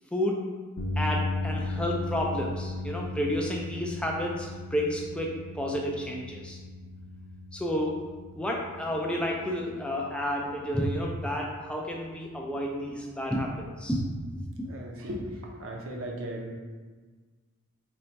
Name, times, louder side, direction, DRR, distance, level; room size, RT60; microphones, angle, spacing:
voice 1, 0.1-0.5 1.0-6.6 7.5-8.0 8.4-14.0 14.3-14.7, equal, 5° left, -1 dB, 0.4 m, -31 dB
sound 1, 0.8-15.0, left 2 dB, 75° left, 0.5 m, -37 dB
voice 2, 14.6-16.5, right 1 dB, 65° right, 0 dB, 0.6 m, -37 dB
4.3 x 2.3 x 3.9 m, 1.4 s
head